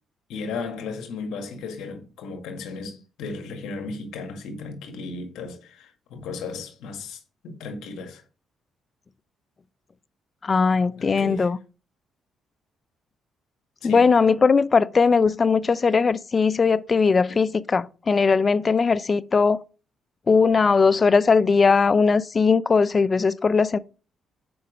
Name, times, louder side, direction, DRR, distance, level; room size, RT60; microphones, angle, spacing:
voice 1, 0.3-8.2 11.0-11.5 13.8-14.1 17.3-17.4, left 4 dB, 85° left, 1.8 m, -35 dB
voice 2, 10.4-11.6 13.8-19.6 20.3-23.8, left 5 dB, 35° left, 0.5 m, -19 dB
7.0 x 5.1 x 5.0 m
cardioid pair, 90°, 0 cm